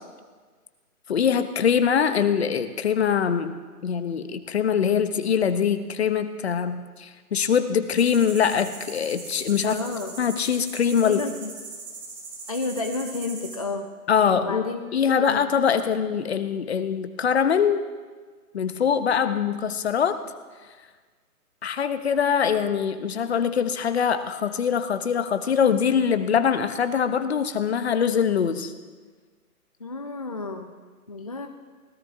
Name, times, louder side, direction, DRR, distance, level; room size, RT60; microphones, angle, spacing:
voice 1, 1.1-3.5 3.8-9.8 10.2-11.2 14.1-14.6 14.9-17.8 18.5-20.2 21.6-28.7, left 7 dB, 45° left, 10 dB, 1.0 m, -23 dB
sound 1, 7.9-13.6, right 4 dB, 30° right, 4.7 m, -40 dB
voice 2, 9.6-10.2 11.0-11.5 12.5-13.9 14.3-14.8 15.2-15.9 29.8-30.7 31.1-31.5, left 3 dB, 25° left, 5 dB, 0.5 m, -31 dB
24.0 x 18.0 x 2.8 m, 1.5 s
figure-of-eight pair, 145°, 45 cm